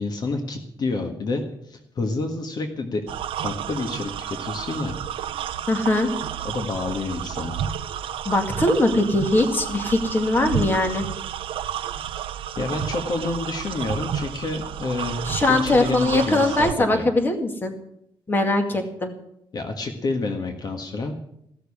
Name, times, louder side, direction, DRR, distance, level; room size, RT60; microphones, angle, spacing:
voice 1, 0.0-3.0 3.3-5.0 6.4-7.6 12.5-15.2 15.5-17.0 19.5-21.2, left 3 dB, 50° left, 5 dB, 1.6 m, -29 dB
sound 1, 3.1-16.7, right 9 dB, 80° right, 0.7 m, -31 dB
voice 2, 5.7-6.1 8.3-11.0 15.3-17.7 18.3-19.1, left 2 dB, 25° left, 4 dB, 2.1 m, -21 dB
16.0 x 6.8 x 9.8 m, 0.76 s
cardioid pair, 140°, 9 cm